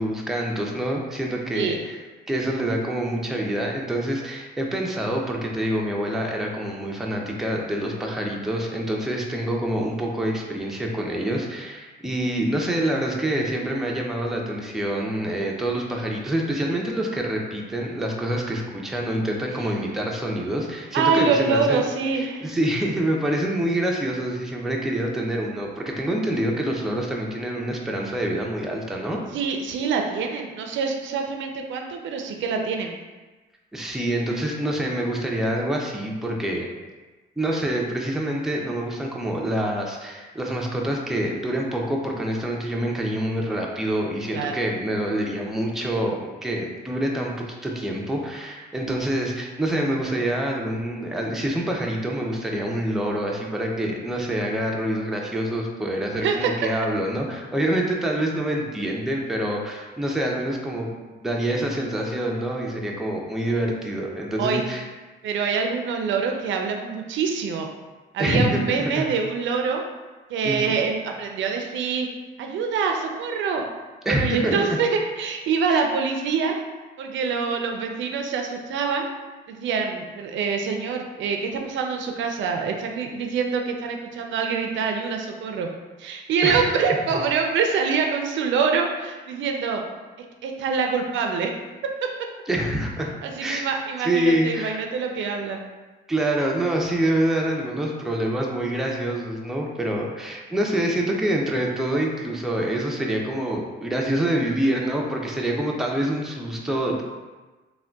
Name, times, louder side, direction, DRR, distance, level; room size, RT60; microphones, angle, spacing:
voice 1, 0.0-2.0 2.3-21.9 22.2-29.2 33.7-36.7 37.4-60.9 61.2-64.8 68.2-69.1 70.4-70.8 74.1-74.6 75.7-75.9 86.4-86.8 92.5-93.1 93.4-93.7 94.0-94.8 96.1-107.0, right 1 dB, ahead, -1 dB, 0.4 m, -26 dB
voice 2, 20.9-22.5 29.3-32.9 44.3-44.6 56.2-56.5 64.4-64.6 65.2-67.7 68.1-69.8 70.3-72.1 72.4-73.7 74.1-76.6 77.0-79.1 79.5-85.7 86.0-89.8 90.4-91.5 92.0-92.1 93.2-95.6, right 5 dB, 70° right, 3 dB, 0.4 m, -25 dB
3.6 x 2.2 x 2.2 m, 1.2 s
cardioid pair, 90°, 20 cm